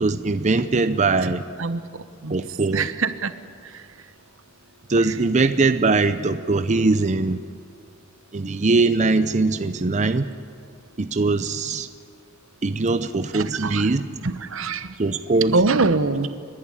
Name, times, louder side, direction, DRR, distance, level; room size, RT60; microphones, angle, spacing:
voice 1, 0.0-1.4 2.3-2.9 4.9-7.4 8.3-10.2 11.0-11.9 12.6-14.1 15.0-15.6, right 3 dB, 35° right, 10 dB, 0.6 m, -21 dB
voice 2, 2.2-3.3 3.6-3.8 5.0-5.2 13.3-13.9 14.2-15.0 15.5-16.3, right 3 dB, 70° right, 12 dB, 1.0 m, -24 dB
29.5 x 11.0 x 9.9 m, 2.3 s
head